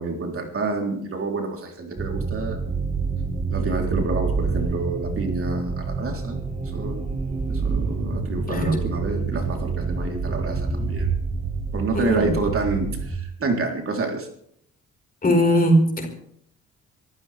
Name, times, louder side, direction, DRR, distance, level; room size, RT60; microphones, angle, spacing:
voice 1, 0.0-2.6 3.5-6.4 6.7-7.1 7.5-11.1 11.7-14.3, right 3 dB, 45° right, 2 dB, 3.6 m, -28 dB
sound 1, 2.0-13.2, right 4 dB, 20° right, 1.5 m, -27 dB
voice 2, 11.9-12.3 15.2-16.1, equal, 30° left, 4 dB, 4.8 m, -19 dB
24.5 x 14.5 x 3.5 m, 0.68 s
cardioid pair, 90°, 30 cm